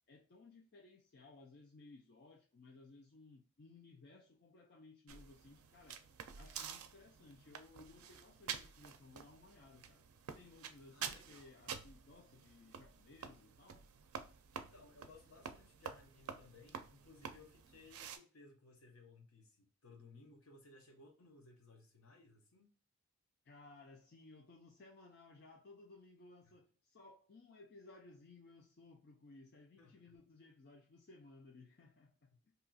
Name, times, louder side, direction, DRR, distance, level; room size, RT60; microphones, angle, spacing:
voice 1, 0.1-6.0 6.4-10.0 10.4-13.8 23.4-32.5, left 3 dB, 45° left, 0.4 m, -60 dB
sound 1, 5.1-18.2, right 7 dB, 80° right, 0.4 m, -49 dB
voice 2, 10.9-11.5 14.5-22.7 29.8-30.1 32.3-32.4, left 3 dB, 75° left, 0.8 m, -61 dB
2.7 x 2.3 x 3.9 m
head